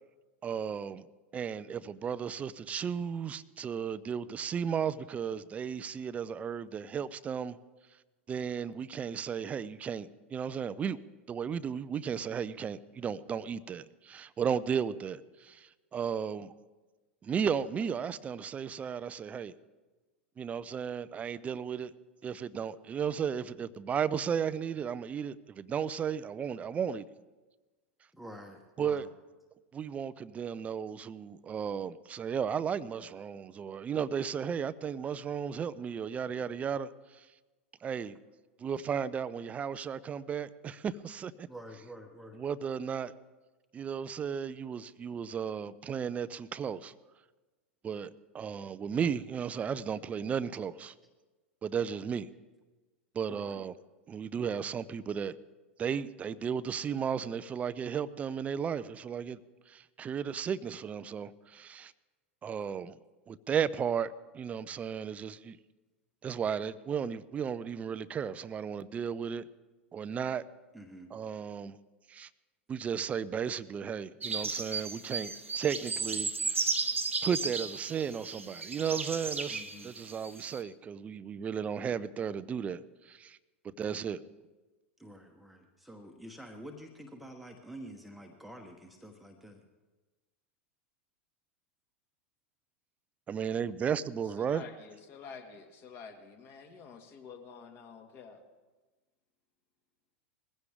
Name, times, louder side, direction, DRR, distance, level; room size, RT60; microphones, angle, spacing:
voice 1, 0.4-1.1 1.3-7.6 8.3-11.0 11.3-16.5 17.2-19.5 20.4-21.9 22.2-27.1 28.8-29.1 29.7-37.3 37.8-38.2 38.6-41.5 42.3-43.1 43.7-46.9 47.8-50.9 51.6-52.3 53.1-53.7 54.1-55.4 55.8-59.4 59.7-61.9 62.4-63.0 63.3-65.6 66.2-69.5 69.9-70.4 71.1-71.8 72.1-72.3 72.7-76.7 77.2-83.4 83.8-84.2 93.3-94.6, right 7 dB, 20° right, 16 dB, 0.5 m, -34 dB
voice 2, 28.1-29.1 41.5-42.4 53.3-53.6 70.7-71.1 79.5-79.9 85.0-89.6, equal, ahead, 2 dB, 1.2 m, -48 dB
sound 1, 74.2-80.6, right 4 dB, 85° right, 1.0 m, -34 dB
voice 3, 94.4-98.4, left 5 dB, 35° left, 5 dB, 2.0 m, -49 dB
20.5 x 15.5 x 3.6 m, 1.2 s
figure-of-eight pair, 90°, 7 cm